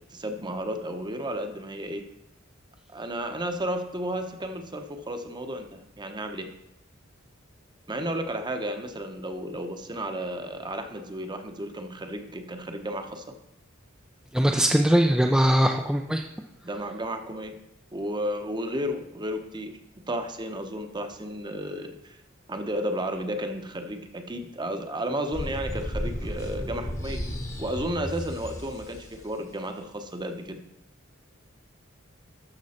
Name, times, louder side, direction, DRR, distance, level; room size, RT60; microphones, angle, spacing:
voice 1, 0.1-2.0 2.9-6.5 7.9-13.2 16.6-17.6 17.9-19.8 20.1-22.2 22.5-27.2 27.6-30.6, equal, 20° right, 6 dB, 0.9 m, -33 dB
voice 2, 14.3-16.2, equal, 5° right, 1 dB, 0.4 m, -21 dB
sound 1, 25.3-29.2, equal, 15° left, 1.1 m, -34 dB
13.0 x 6.3 x 4.3 m, 0.86 s
head